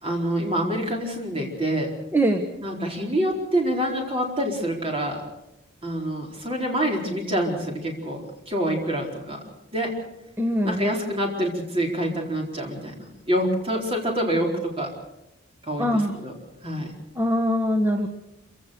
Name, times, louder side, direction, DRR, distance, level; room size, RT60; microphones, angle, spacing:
voice 1, 0.0-1.9 2.6-5.2 5.8-9.4 9.7-9.9 10.6-14.9 15.6-16.3 16.6-16.9, equal, 30° right, 0 dB, 4.3 m, -26 dB
voice 2, 2.1-2.5 10.4-10.9 15.8-16.1 17.2-18.1, equal, 10° right, 5 dB, 1.2 m, -22 dB
26.5 x 16.5 x 6.7 m, 0.92 s
head